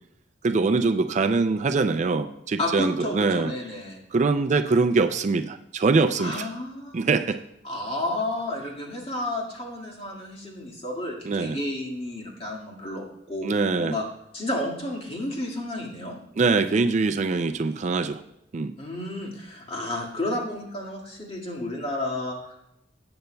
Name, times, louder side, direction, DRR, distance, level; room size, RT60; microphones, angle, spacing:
voice 1, 0.4-3.5 4.1-6.5 6.9-7.4 11.2-11.6 13.4-13.9 16.4-18.2 18.5-18.7, right 4 dB, 40° right, 8 dB, 0.4 m, -23 dB
voice 2, 2.6-4.0 6.2-6.9 7.6-13.5 13.8-14.0 14.3-16.2 18.8-22.6, left 1 dB, 30° left, -1 dB, 1.9 m, -31 dB
17.0 x 7.8 x 2.2 m, 0.82 s
head